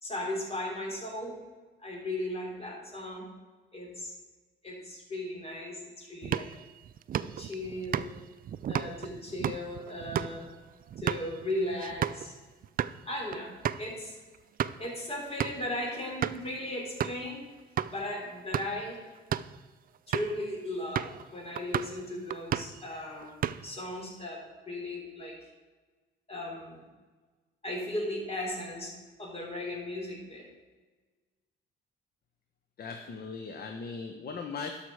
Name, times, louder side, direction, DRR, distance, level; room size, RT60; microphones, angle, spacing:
voice 1, 0.0-1.4 1.8-3.3 3.7-4.1 4.6-6.5 7.2-8.1 8.7-10.5 11.0-12.4 13.1-14.2 14.8-17.5 17.9-19.0 20.1-23.3 23.6-25.4 26.3-26.8 27.6-28.9 29.2-30.5, left 1 dB, 30° left, -1 dB, 3.4 m, -36 dB
sound 1, 6.2-12.3 12.6-13.0 13.3-13.4 13.6-13.9 14.3-14.9 15.4-15.7 16.2-16.5 17.0-17.3 17.8-17.9 18.4-18.8 19.2-19.6 20.1-20.4 21.0-21.2 21.6-22.0 22.3-22.8 23.2-23.8, right 10 dB, 45° right, 0.4 m, -33 dB
voice 2, 32.8-34.8, left 4 dB, 50° left, 5 dB, 0.9 m, -39 dB
12.0 x 5.9 x 4.7 m, 1.3 s
cardioid pair, 90°, 20 cm